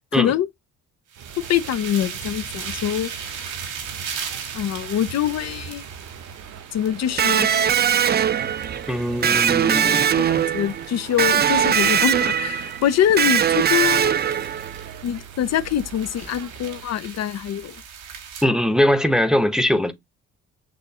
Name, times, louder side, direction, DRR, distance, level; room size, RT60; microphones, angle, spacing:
voice 1, 0.1-0.5 1.5-3.1 4.5-5.8 6.7-7.5 10.2-10.3 10.5-14.1 15.0-17.8, left 10 dB, 60° left, 0.5 m, -24 dB
sound 1, 1.1-16.9, right 8 dB, 65° right, 0.8 m, -42 dB
sound 2, 1.1-18.5, right 7 dB, 90° right, 1.5 m, -38 dB
Electric guitar, 7.2-14.9, right 8 dB, 35° right, 0.5 m, -21 dB
voice 2, 8.9-10.1 18.4-19.9, equal, ahead, 0.8 m, -21 dB
6.8 x 2.4 x 2.8 m
cardioid pair, 90°, 30 cm